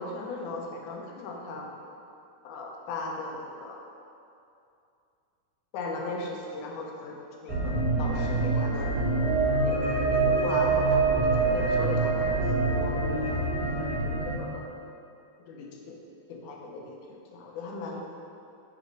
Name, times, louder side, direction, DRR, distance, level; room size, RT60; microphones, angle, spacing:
voice 1, 0.0-1.7 2.4-3.8 5.7-8.9 9.6-13.0 14.0-14.8 15.5-16.0 16.3-18.0, left 3 dB, 80° left, 0 dB, 2.1 m, -37 dB
sound 1, 7.5-14.3, right 3 dB, 60° right, 1.9 m, -25 dB
6.5 x 4.1 x 4.6 m, 2.6 s
omnidirectional pair, 3.7 m